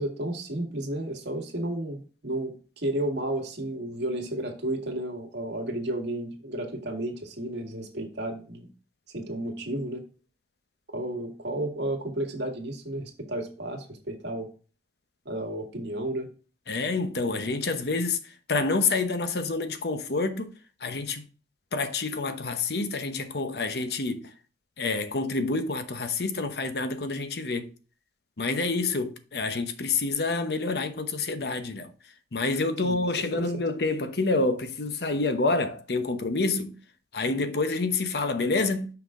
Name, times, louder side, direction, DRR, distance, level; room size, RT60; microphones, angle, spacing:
voice 1, 0.0-8.7 9.1-10.0 10.9-14.5 15.3-16.3 32.8-33.0 33.3-33.5, right 1 dB, 85° right, 1.9 m, -32 dB
voice 2, 16.7-18.2 18.5-20.5 20.8-21.2 21.7-24.3 24.8-27.7 28.4-31.9 32.3-36.7 37.1-38.9, left 3 dB, 65° left, 0.9 m, -28 dB
5.8 x 5.7 x 3.7 m
head